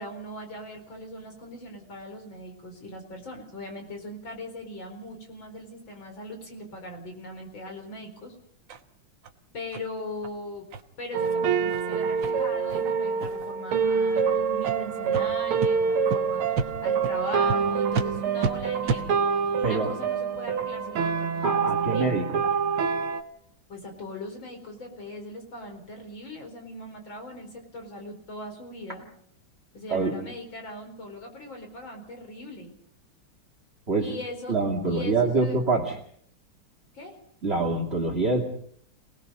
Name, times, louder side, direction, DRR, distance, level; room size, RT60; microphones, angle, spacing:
voice 1, 0.0-8.3 9.5-10.7 11.0-19.2 19.6-22.2 23.7-29.1 29.7-32.8 34.0-34.6 34.9-35.6 36.9-37.2, left 1 dB, 65° left, 4 dB, 5.2 m, -40 dB
sound 1, 8.7-8.8 9.2-9.3 9.7-9.8 10.2-10.3 10.7-10.8 11.2-11.3 11.7-11.8 12.2-12.3 12.7-12.8 13.2-13.5 14.1-14.2 14.6-14.8 15.1-15.2 15.6-15.7 16.1-16.2 16.5-16.7 17.0-17.1 17.5-17.6 17.9-18.1 18.4-18.5 18.8-19.0, right 5 dB, 65° right, 1.9 m, -30 dB
sound 2, 11.1-23.2, right 6 dB, 80° right, 2.1 m, -26 dB
voice 2, 21.4-22.4 29.9-30.1 33.9-34.1 34.5-36.0 37.4-38.4, right 3 dB, 30° right, -1 dB, 2.4 m, -25 dB
27.5 x 19.5 x 5.5 m, 0.64 s
omnidirectional pair, 2.3 m